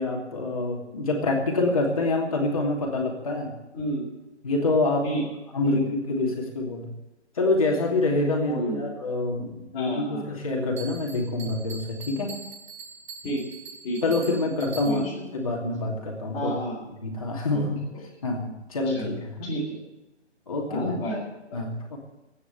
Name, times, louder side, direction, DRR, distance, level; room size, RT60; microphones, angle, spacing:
voice 1, 0.0-3.5 4.4-5.0 5.5-6.9 7.4-12.3 14.0-15.1 15.3-16.6 17.0-17.8 18.2-19.5 20.5-20.9 21.5-22.0, left 2 dB, 30° left, 0 dB, 2.8 m, -26 dB
voice 2, 3.7-4.1 5.0-5.2 5.6-5.8 8.5-8.9 9.7-10.3 13.2-13.4 13.8-14.4 14.8-15.3 15.8-15.9 16.3-16.9 17.5-17.7 17.9-18.0 18.8-19.2 19.4-19.8 20.7-21.6, equal, 10° left, -6 dB, 2.3 m, -31 dB
Bell, 10.8-15.3, right 5 dB, 40° right, 4.6 m, -43 dB
14.5 x 9.7 x 8.2 m, 0.98 s
hypercardioid pair, 175°, 35 cm